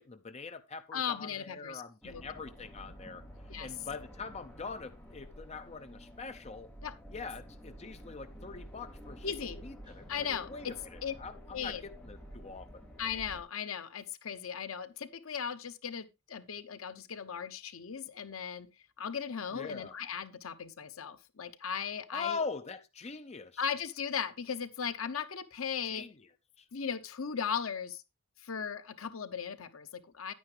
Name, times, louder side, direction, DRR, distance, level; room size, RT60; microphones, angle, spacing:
voice 1, 0.0-3.2 3.6-6.7 7.1-9.3 9.6-12.8 19.5-19.9 22.1-23.6 25.8-26.1 26.6-26.7, left 4 dB, 30° left, 0.6 m, -43 dB
voice 2, 0.9-2.2 3.5-3.7 6.8-6.9 9.2-9.6 10.1-10.7 11.0-11.1 11.5-11.8 13.0-18.7 19.0-22.4 23.6-26.1 26.7-28.0 28.4-30.3, left 7 dB, 70° left, 0.8 m, -37 dB
sound 1, 2.0-13.4, equal, 5° left, 2.5 m, -50 dB
Guitar, 9.8-11.1, equal, 20° right, 4.6 m, -68 dB
10.0 x 9.4 x 3.2 m
head